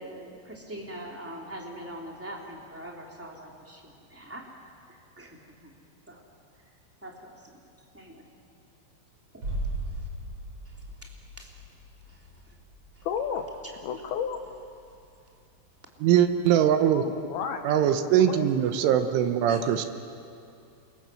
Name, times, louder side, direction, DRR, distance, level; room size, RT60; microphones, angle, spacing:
voice 1, 0.0-5.7 6.1-6.2 7.0-7.6 7.9-8.3 9.3-9.4 9.9-10.1 10.6-11.6 12.0-12.6 12.9-13.1, right 1 dB, 5° right, -1 dB, 2.0 m, -44 dB
sound 1, 9.4-15.1 15.4-15.5, right 1 dB, 30° right, 7.4 m, -38 dB
voice 2, 13.0-13.5 13.8-14.4 16.9-17.6 18.0-18.5 18.8-18.9 19.5-19.9, left 7 dB, 80° left, 5 dB, 2.2 m, -33 dB
voice 3, 16.0-17.0 17.7-19.9, right 10 dB, 75° right, 8 dB, 3.4 m, -22 dB
29.0 x 26.0 x 7.7 m, 2.5 s
omnidirectional pair, 5.9 m